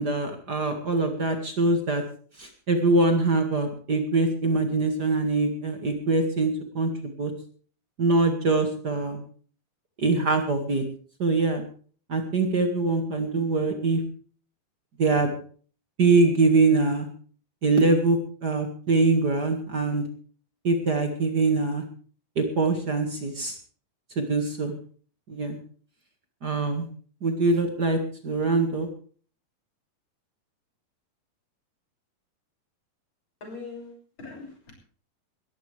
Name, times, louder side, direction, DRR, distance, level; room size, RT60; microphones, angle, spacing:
voice 1, 0.0-2.0 2.4-7.3 8.0-9.2 10.0-10.8 11.2-11.6 12.1-14.0 15.0-15.3 16.0-17.1 17.6-20.0 20.6-21.8 22.4-23.5 24.2-24.7 25.3-25.6 26.4-26.9 27.2-28.9, right 3 dB, 35° right, 5 dB, 1.9 m, -23 dB
voice 2, 33.4-34.7, left 4 dB, 35° left, 1 dB, 6.8 m, -41 dB
20.5 x 15.0 x 3.4 m, 0.44 s
omnidirectional pair, 4.1 m